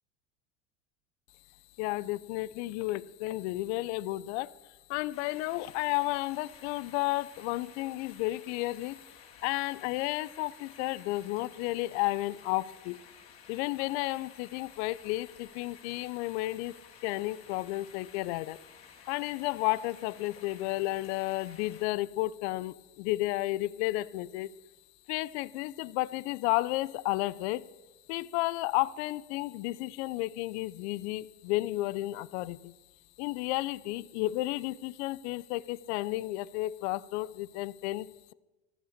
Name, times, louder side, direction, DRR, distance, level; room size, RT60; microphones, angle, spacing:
voice 1, 1.8-4.5 4.9-9.0 9.4-13.0 13.5-16.7 17.0-18.6 19.1-24.5 25.1-27.7 28.1-32.7 33.2-38.3, left 18 dB, 75° left, 0.6 m, -32 dB
sound 1, 5.1-21.8, left 6 dB, 40° left, 3.4 m, -55 dB
14.5 x 12.0 x 6.5 m
supercardioid pair, 105°, 34 cm